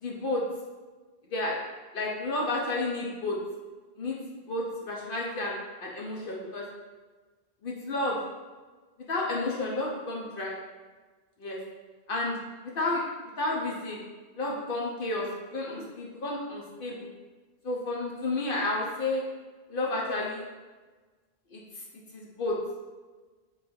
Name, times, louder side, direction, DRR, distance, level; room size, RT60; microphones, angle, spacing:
voice 1, 0.0-0.4 1.3-1.6 1.9-3.4 4.0-4.2 4.5-6.6 7.6-8.2 9.1-10.5 11.4-11.6 12.1-12.4 12.7-13.0 13.4-14.0 14.4-15.3 15.5-17.1 17.6-19.2 19.7-20.4 21.5-21.6 22.1-22.6, left 2 dB, 60° left, -3 dB, 0.9 m, -31 dB
3.9 x 3.3 x 4.2 m, 1.3 s
omnidirectional pair, 1.1 m